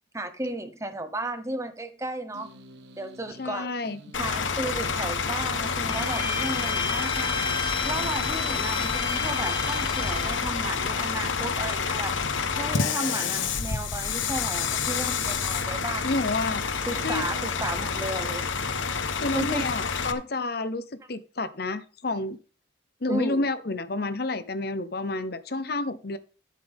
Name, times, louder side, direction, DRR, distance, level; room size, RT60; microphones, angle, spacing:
voice 1, 0.1-2.5 3.0-3.7 4.2-7.4 7.8-12.1 12.6-16.1 16.9-18.4 19.3-19.7 23.1-23.4, right 1 dB, 15° right, 1.0 m, -34 dB
sound 1, 2.3-9.7, right 1 dB, 65° right, 1.3 m, -48 dB
voice 2, 3.4-4.0 16.0-16.6 17.0-17.2 19.2-22.4 23.0-26.2, left 2 dB, 55° left, 0.8 m, -29 dB
Bus / Idling, 4.1-20.1, left 5 dB, 85° left, 1.1 m, -28 dB
Bowed string instrument, 5.9-10.5, left 4 dB, 25° left, 1.1 m, -33 dB
13.0 x 7.6 x 3.5 m
head